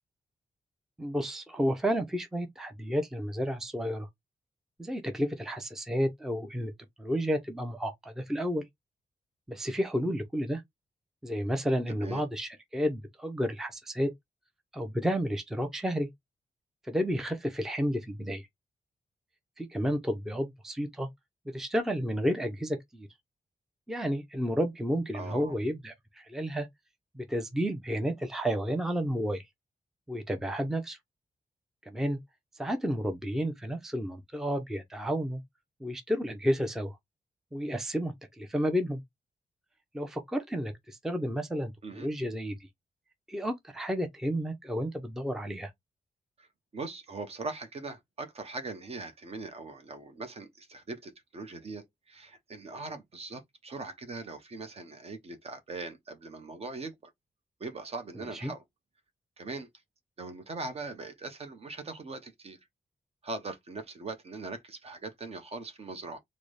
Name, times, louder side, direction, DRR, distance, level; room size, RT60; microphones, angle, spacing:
voice 1, 1.0-4.1 4.8-6.7 7.0-8.6 9.5-10.6 11.2-14.1 14.7-16.1 16.8-18.5 19.6-21.1 21.5-23.1 23.9-26.7 27.1-29.4 30.1-31.0 31.9-32.2 32.6-35.4 35.8-37.0 37.5-39.0 39.9-42.6 43.3-45.7 58.3-58.5, equal, 5° right, 0.5 m, -31 dB
voice 2, 25.1-25.6 41.8-42.1 46.4-46.5 46.7-56.9 57.6-58.6 59.4-59.7 60.2-62.6 63.2-66.2, right 3 dB, 45° right, 0.7 m, -40 dB
3.8 x 2.0 x 3.2 m
wide cardioid pair, 170°, 15 cm